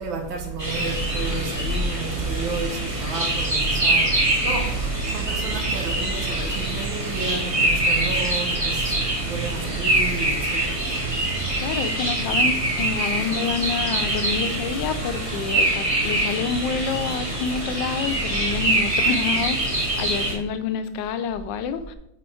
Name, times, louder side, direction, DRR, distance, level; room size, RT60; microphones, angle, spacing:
voice 1, 0.0-11.7, right 3 dB, 80° right, 1.9 m, -30 dB
sound 1, 0.6-20.3, right 1 dB, 20° right, 1.3 m, -24 dB
voice 2, 11.5-22.0, left 6 dB, 75° left, 1.2 m, -28 dB
6.9 x 4.4 x 4.8 m
omnidirectional pair, 2.1 m